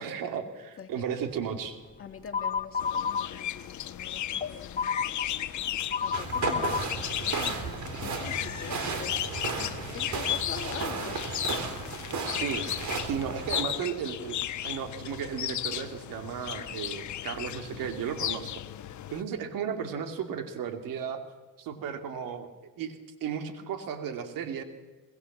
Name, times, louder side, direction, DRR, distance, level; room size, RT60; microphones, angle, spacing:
voice 1, 0.0-1.8 12.4-12.7 13.1-18.6 19.1-21.2 21.6-22.5 22.8-24.6, right 7 dB, 80° right, 7 dB, 2.6 m, -34 dB
voice 2, 2.0-9.1 9.6-11.2, left 7 dB, 40° left, 5 dB, 2.3 m, -44 dB
sound 1, 2.3-3.3 3.8-6.8, left 6 dB, 25° left, 0.9 m, -30 dB
sound 2, 2.8-19.2, left 12 dB, 60° left, 1.1 m, -35 dB
sound 3, 6.1-13.6, right 4 dB, 60° right, 3.7 m, -34 dB
23.0 x 20.5 x 7.4 m, 1.2 s
cardioid pair, 100°, 33 cm